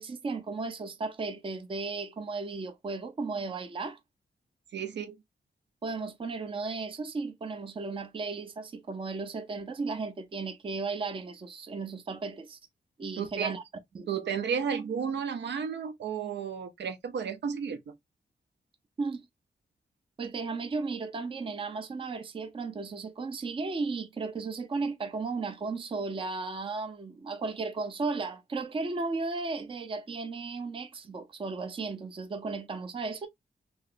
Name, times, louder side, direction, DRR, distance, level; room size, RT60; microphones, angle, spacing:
voice 1, 0.0-4.0 5.8-12.6 13.0-13.6 13.9-14.1 19.0-19.3 20.2-33.3, right 4 dB, 30° right, 0.5 m, -35 dB
voice 2, 4.7-5.2 13.2-13.5 14.1-17.9, right 7 dB, 80° right, 0.6 m, -32 dB
3.1 x 2.8 x 2.4 m
wide cardioid pair, 170°, 18 cm